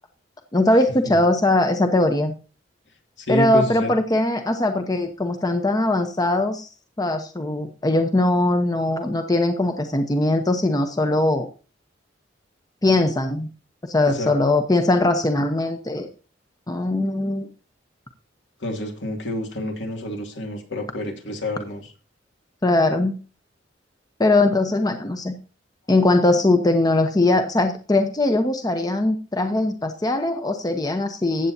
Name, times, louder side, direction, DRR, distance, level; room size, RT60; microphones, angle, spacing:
voice 1, 0.5-2.3 3.3-6.7 7.0-11.5 12.8-13.5 13.8-16.1 16.7-17.5 22.6-23.1 24.2-25.4 25.9-31.5, left 2 dB, 20° left, 7 dB, 0.8 m, -20 dB
voice 2, 3.2-3.9 14.1-14.3 18.6-21.9, left 1 dB, 70° left, 3 dB, 2.6 m, -28 dB
15.0 x 8.3 x 2.8 m, 0.35 s
head